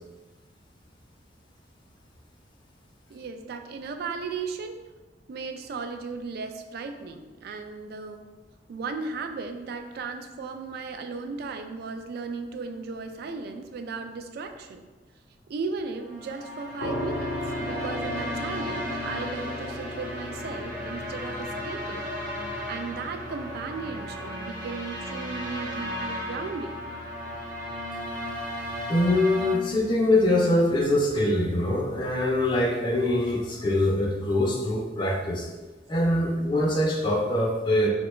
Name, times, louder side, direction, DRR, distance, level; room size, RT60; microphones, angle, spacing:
voice 1, 3.1-4.8 5.3-8.2 8.7-14.9 15.5-26.8, right 4 dB, 60° right, 6 dB, 0.3 m, -36 dB
sound 1, 16.0-29.5, equal, 75° right, 0.7 m, -35 dB
sound 2, 16.8-31.6, left 1 dB, 80° left, 0.5 m, -39 dB
voice 2, 28.9-35.5 35.9-37.9, left 1 dB, 25° left, -2 dB, 0.4 m, -23 dB
3.7 x 2.2 x 3.0 m, 1.2 s
head